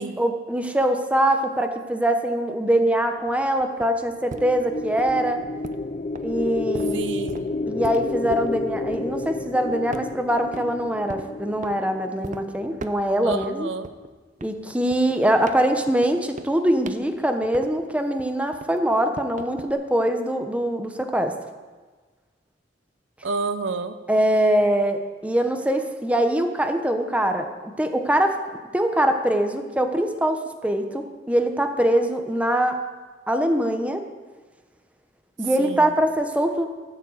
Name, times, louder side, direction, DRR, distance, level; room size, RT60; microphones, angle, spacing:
voice 1, 0.0-5.4 6.2-7.0 7.7-13.7 14.4-21.3 24.1-28.4 28.7-32.8 33.3-34.0 35.4-36.7, right 1 dB, 5° right, 5 dB, 1.0 m, -23 dB
sound 1, 3.2-9.5 9.9-10.7 11.1-11.8 12.2-12.4 12.8-13.5 13.8-17.9 18.2-19.7, right 3 dB, 45° right, 0.7 m, -40 dB
sound 2, 4.1-12.6, left 3 dB, 40° left, 0.5 m, -31 dB
voice 2, 6.7-7.5 13.2-13.9 23.2-24.0 35.6-35.9, right 3 dB, 75° right, 11 dB, 0.7 m, -30 dB
13.5 x 7.4 x 7.9 m, 1.4 s
head